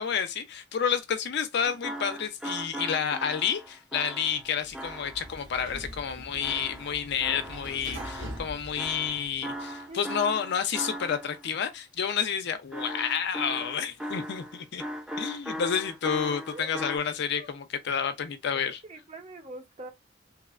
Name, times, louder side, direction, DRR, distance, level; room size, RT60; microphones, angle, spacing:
voice 1, 0.0-14.8 15.2-18.8, left 7 dB, 60° left, 0.4 m, -30 dB
sound 1, 1.6-5.4 6.4-8.5 8.8-11.5 12.7-17.0, equal, 5° right, 0.3 m, -38 dB
Sliding door, 4.4-9.6, equal, 75° right, 1.0 m, -43 dB
voice 2, 9.9-10.4 16.5-16.7 17.3-17.5 18.8-19.9, right 1 dB, 35° right, 0.7 m, -44 dB
2.9 x 2.0 x 2.4 m
head